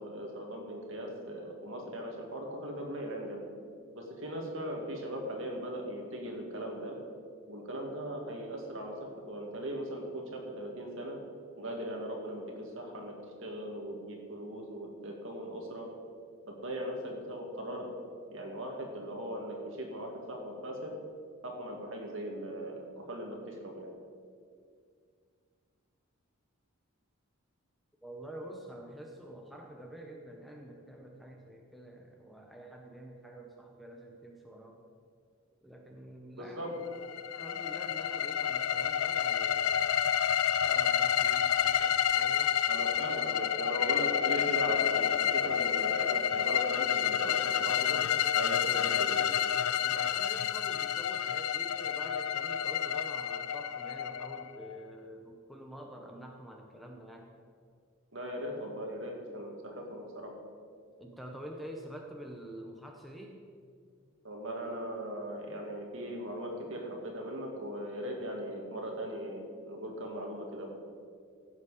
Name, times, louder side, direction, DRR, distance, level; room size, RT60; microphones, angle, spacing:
voice 1, 0.0-3.4 3.9-7.0 7.5-8.9 9.3-11.2 11.6-13.1 13.4-15.9 16.5-17.9 18.3-20.9 21.4-23.9 36.3-36.7 42.7-48.0 48.4-49.4 58.1-60.3 64.2-70.7, right 1 dB, 60° right, 0 dB, 2.2 m, -39 dB
voice 2, 28.0-34.8 35.6-36.7 37.3-39.8 40.6-42.6 49.8-57.3 61.0-63.4, right 1 dB, ahead, 0 dB, 0.8 m, -47 dB
sound 1, 36.9-54.8, left 9 dB, 80° left, 0.4 m, -29 dB
16.0 x 7.3 x 5.0 m, 2.2 s
head